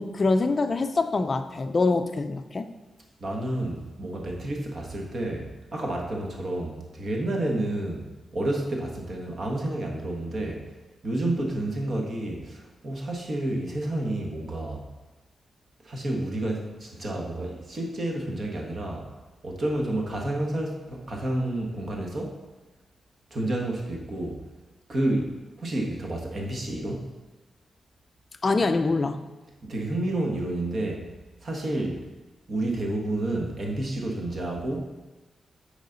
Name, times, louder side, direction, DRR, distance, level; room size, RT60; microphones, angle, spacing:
voice 1, 0.0-2.7 28.4-29.2, left 3 dB, 30° left, 9 dB, 0.4 m, -24 dB
voice 2, 3.2-10.6 11.0-14.8 15.8-19.1 19.4-22.4 23.3-24.4 24.9-27.1 29.6-31.1 31.4-32.0 32.5-34.8, right 1 dB, 40° right, 0 dB, 1.3 m, -30 dB
8.3 x 4.9 x 3.9 m, 1.2 s
wide cardioid pair, 150°, 0 cm